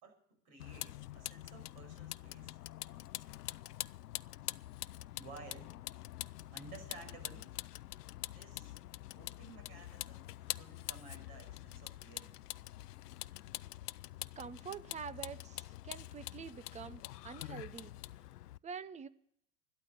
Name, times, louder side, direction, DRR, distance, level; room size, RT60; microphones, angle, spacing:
voice 1, 0.0-2.6 5.1-5.7 6.5-7.5 8.2-8.8 9.1-12.3, right 4 dB, 50° right, 5 dB, 5.6 m, -55 dB
Vehicle, 0.6-18.6, left 15 dB, 85° left, 0.5 m, -45 dB
voice 2, 14.4-17.9 18.6-19.1, right 7 dB, 15° right, 16 dB, 0.6 m, -46 dB
12.5 x 12.0 x 6.3 m, 0.67 s
hypercardioid pair, 100°, 46 cm